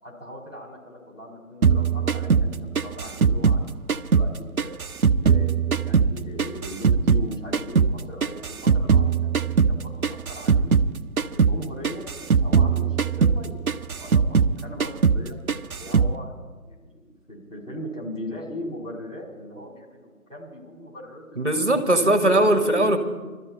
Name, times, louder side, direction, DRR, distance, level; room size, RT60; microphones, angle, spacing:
voice 1, 0.0-4.3 4.6-4.8 5.2-10.7 11.3-15.4 15.8-16.9 17.3-21.5 21.9-22.7, left 1 dB, 55° left, -2 dB, 4.3 m, -39 dB
sound 1, 1.6-4.3 4.6-7.3 7.5-10.9 11.2-11.6 11.8-14.5 14.8-15.2 15.5-16.1, right 6 dB, 70° right, 0.6 m, -20 dB
voice 2, 21.4-23.0, right 1 dB, 50° right, 6 dB, 1.6 m, -19 dB
23.0 x 13.0 x 4.4 m, 1.4 s
figure-of-eight pair, 175°, 45 cm